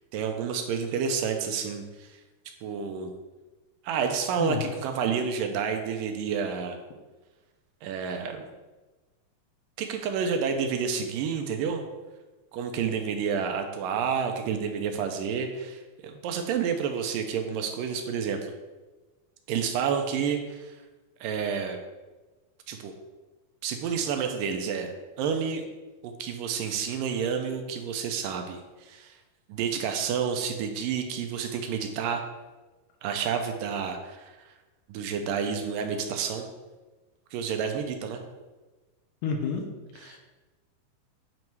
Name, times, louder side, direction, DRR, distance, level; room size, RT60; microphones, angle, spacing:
voice 1, 0.1-2.2 2.6-3.1 3.8-6.8 7.8-8.5 9.8-11.8 12.5-18.5 19.5-20.7 21.2-21.8 22.7-22.9 23.6-25.7 26.0-29.2 29.5-32.2 33.0-34.5 34.9-36.5 37.3-38.2 39.9-40.2, right 6 dB, 80° right, 5 dB, 2.2 m, -30 dB
voice 2, 39.2-39.7 40.0-40.2, left 5 dB, 75° left, 3 dB, 2.2 m, -30 dB
9.2 x 3.2 x 4.5 m, 1.2 s
omnidirectional pair, 4.1 m